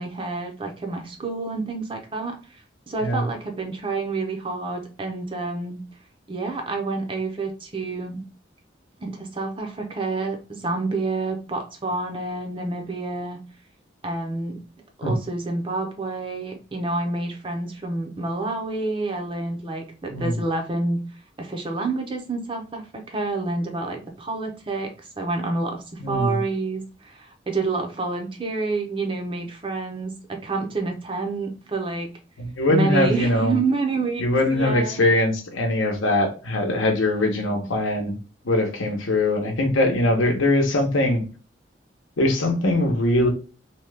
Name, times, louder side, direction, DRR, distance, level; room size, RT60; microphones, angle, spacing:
voice 1, 0.0-5.8 6.3-8.2 9.0-13.4 14.0-14.6 15.0-21.0 21.4-32.1 32.7-34.2 34.5-35.0 37.4-37.7, right 3 dB, 25° right, 3 dB, 0.5 m, -28 dB
voice 2, 26.0-26.4 32.4-33.6 34.2-38.2 38.4-41.2 42.2-43.3, left 1 dB, 90° left, 3 dB, 0.8 m, -22 dB
2.8 x 2.2 x 3.2 m, 0.35 s
head